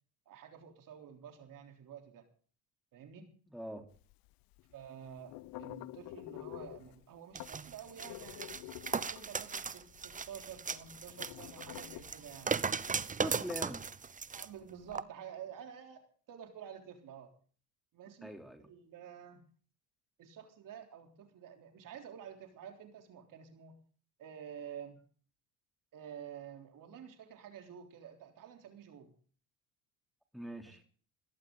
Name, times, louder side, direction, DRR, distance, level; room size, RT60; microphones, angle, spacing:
voice 1, 0.3-2.3 2.9-3.3 4.7-12.6 12.9-13.5 14.3-17.3 17.9-19.5 20.2-23.8 24.2-25.0 25.9-29.1 30.7-30.8, right 8 dB, 60° right, 4 dB, 3.6 m, -50 dB
voice 2, 3.5-3.9 13.2-13.8 18.2-18.7 30.3-30.8, equal, ahead, 4 dB, 3.2 m, -42 dB
sound 1, 3.9-13.9, left 18 dB, 65° left, 0.8 m, -49 dB
sound 2, 7.3-14.5 14.9-15.0, right 5 dB, 20° right, 0.9 m, -38 dB
19.5 x 17.0 x 3.9 m, 0.43 s
supercardioid pair, 75°, 37 cm